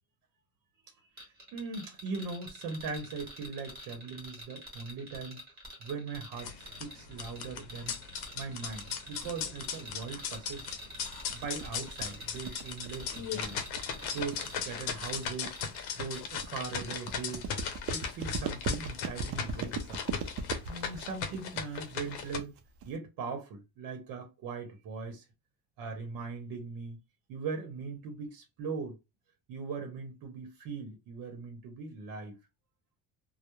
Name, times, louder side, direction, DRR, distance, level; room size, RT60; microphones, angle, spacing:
voice 1, 0.8-5.4 5.8-8.0 8.3-10.7 11.3-13.7 14.1-15.5 16.0-17.5 17.9-20.0 20.7-22.5 22.8-25.2 25.8-27.0 27.3-29.0 29.5-32.4, right 4 dB, 65° right, 0.8 m, -40 dB
sound 1, 1.2-15.8 16.1-16.4, equal, 25° right, 1.2 m, -47 dB
sound 2, 6.3-22.4, left 7 dB, 85° left, 0.6 m, -38 dB
sound 3, 11.0-23.0, right 4 dB, 40° right, 0.4 m, -39 dB
2.2 x 2.0 x 2.9 m
cardioid pair, 140°, 36 cm